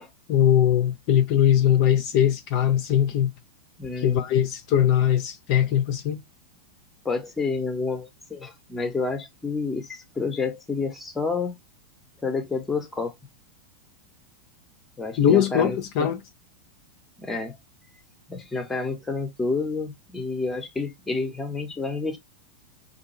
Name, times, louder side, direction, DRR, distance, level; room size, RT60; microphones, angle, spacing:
voice 1, 0.3-3.3 4.0-6.2 15.2-16.2, left 10 dB, 45° left, 0.4 m, -21 dB
voice 2, 3.8-4.2 7.0-11.6 12.2-13.2 15.0-16.1 17.2-17.6 18.3-22.2, left 4 dB, 10° left, 0.7 m, -29 dB
2.5 x 2.3 x 2.9 m
figure-of-eight pair, 90°, 0 cm